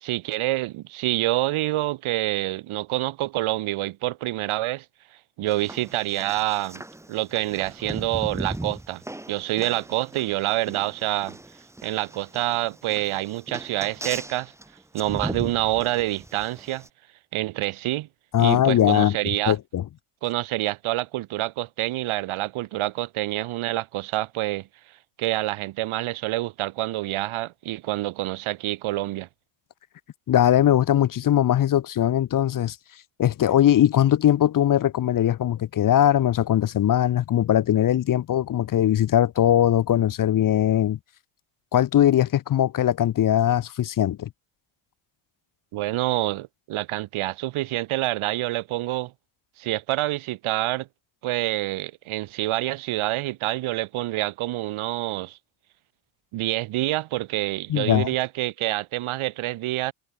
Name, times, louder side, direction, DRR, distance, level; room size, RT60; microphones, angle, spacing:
voice 1, 0.0-4.9 5.4-6.8 7.1-9.0 9.3-11.4 11.8-14.5 14.9-16.9 17.3-18.1 18.4-19.6 20.2-24.7 25.2-29.3 45.7-49.1 49.6-50.9 51.2-55.4 56.3-59.9, right 16 dB, 75° right, 1.8 m, -27 dB
sound 1, 5.5-16.9, right 1 dB, 5° right, 1.0 m, -38 dB
voice 2, 18.3-19.2 19.5-19.8 30.3-32.8 33.2-41.0 41.7-44.3 57.7-58.1, left 11 dB, 40° left, 0.7 m, -20 dB
cardioid pair, 90°, 49 cm